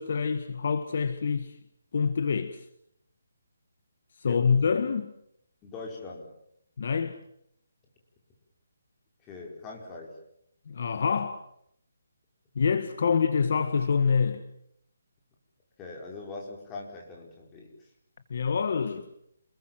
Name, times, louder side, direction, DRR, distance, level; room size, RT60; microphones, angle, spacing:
voice 1, 0.0-1.5 1.9-2.6 4.2-5.1 6.8-7.2 10.7-11.4 12.5-14.4 18.3-19.1, left 5 dB, 45° left, 1.6 m, -26 dB
voice 2, 4.2-4.6 5.6-6.3 9.2-10.2 15.8-17.7, left 3 dB, 10° left, 4.9 m, -41 dB
28.0 x 21.5 x 7.8 m
hypercardioid pair, 175°, 0 cm